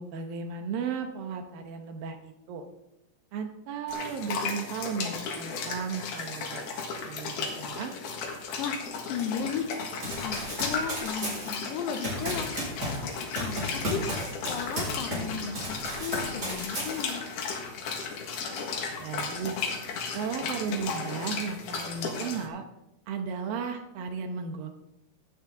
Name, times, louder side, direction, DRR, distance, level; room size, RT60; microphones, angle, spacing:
voice 1, 0.0-2.6 3.3-7.9 19.0-19.6 20.1-22.6 23.1-24.7, right 6 dB, 75° right, 6 dB, 2.8 m, -35 dB
sound 1, 3.9-22.5, left 5 dB, 90° left, 3.7 m, -35 dB
voice 2, 8.6-14.0 14.5-17.2, left 7 dB, 75° left, 6 dB, 2.5 m, -35 dB
Run, 10.0-15.3 15.6-17.3, equal, 20° right, 5.2 m, -34 dB
16.5 x 8.9 x 3.9 m, 0.87 s
omnidirectional pair, 4.3 m